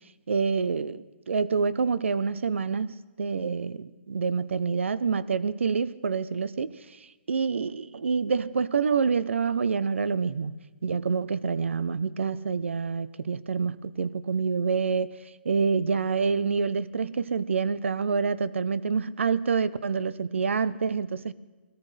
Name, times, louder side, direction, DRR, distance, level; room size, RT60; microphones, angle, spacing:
voice 1, 0.3-7.0 7.3-10.6 10.8-15.2 15.4-21.3, right 5 dB, 85° right, 0.7 m, -27 dB
22.0 x 17.5 x 3.3 m
hypercardioid pair, 165°, 6 cm